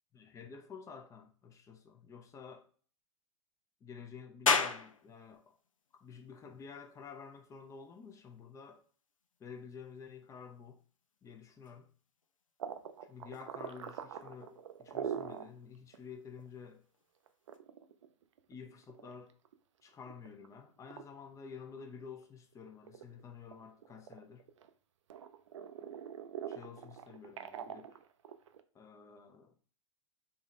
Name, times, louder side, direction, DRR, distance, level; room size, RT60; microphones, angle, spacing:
voice 1, 0.1-2.7 3.8-5.5 5.9-8.8 9.4-10.8 11.2-11.9 13.0-16.8 18.5-19.3 19.8-24.5 26.5-28.0 28.7-29.5, left 6 dB, 20° left, 0.6 m, -50 dB
sound 1, 4.5-17.6, left 5 dB, 85° left, 0.4 m, -41 dB
sound 2, 12.6-15.5 15.9-16.0 16.4-16.5 17.3-19.5 20.0-20.5 20.9-21.0 21.6-22.5 22.8-24.7 25.1-28.6, right 8 dB, 70° right, 0.4 m, -43 dB
3.6 x 2.8 x 3.1 m
figure-of-eight pair, 95°, 16 cm